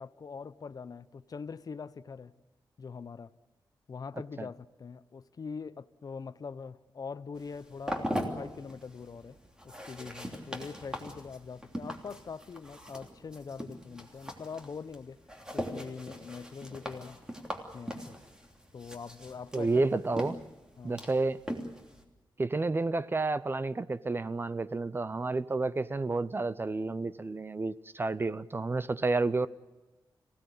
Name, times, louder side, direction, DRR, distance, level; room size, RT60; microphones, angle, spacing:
voice 1, 0.0-2.3 2.8-3.3 3.9-9.4 9.6-15.2 15.5-17.2 17.7-18.2 18.7-20.0 20.3-20.4 20.8-21.1, left 5 dB, 50° left, 0.8 m, -43 dB
sound 1, 7.4-22.0, equal, 10° right, 3.1 m, -41 dB
voice 2, 19.5-20.3 20.8-21.4 22.4-29.5, right 3 dB, 30° right, 0.7 m, -30 dB
26.0 x 17.0 x 8.4 m
wide cardioid pair, 130°, 8 cm